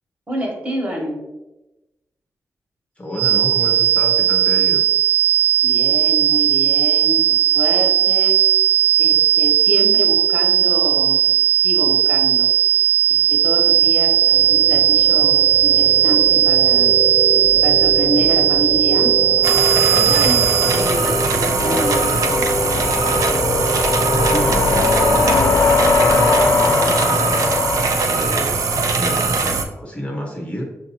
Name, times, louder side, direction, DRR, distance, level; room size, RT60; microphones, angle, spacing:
voice 1, 0.3-1.2 5.6-8.4 9.0-11.3 11.6-12.5 13.1-16.9 17.6-19.1 19.9-22.1, equal, 30° right, -1 dB, 1.1 m, -27 dB
voice 2, 3.0-4.8 24.0-26.0 26.4-27.5 28.1-30.6, equal, 20° left, -1 dB, 0.6 m, -29 dB
sound 1, 3.1-20.9, right 11 dB, 55° right, 1.1 m, -16 dB
sound 2, 13.7-28.9, left 3 dB, 65° left, 0.5 m, -22 dB
sound 3, 19.4-29.6, right 4 dB, 70° right, 0.5 m, -21 dB
5.9 x 2.6 x 2.8 m, 1.0 s
wide cardioid pair, 155°, 6 cm